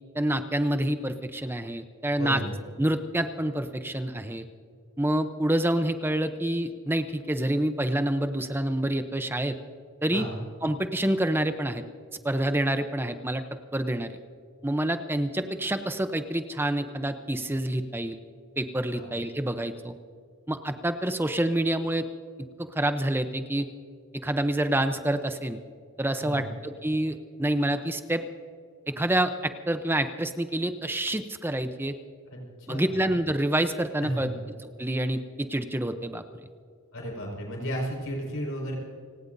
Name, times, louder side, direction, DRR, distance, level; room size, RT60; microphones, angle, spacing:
voice 1, 0.1-2.4 2.8-4.5 5.0-9.6 10.0-10.2 10.6-11.8 12.2-13.4 13.7-14.2 14.6-18.2 18.6-19.9 20.5-22.1 22.7-23.7 24.2-25.6 26.0-28.2 28.9-32.0 32.7-34.3 34.8-36.2, right 1 dB, 10° right, 8 dB, 0.6 m, -27 dB
voice 2, 2.2-2.6 10.1-10.4 18.9-19.1 26.2-26.5 32.3-33.0 34.0-34.4 36.9-38.7, equal, 70° left, -1 dB, 5.2 m, -34 dB
30.0 x 18.0 x 2.7 m, 2.2 s
head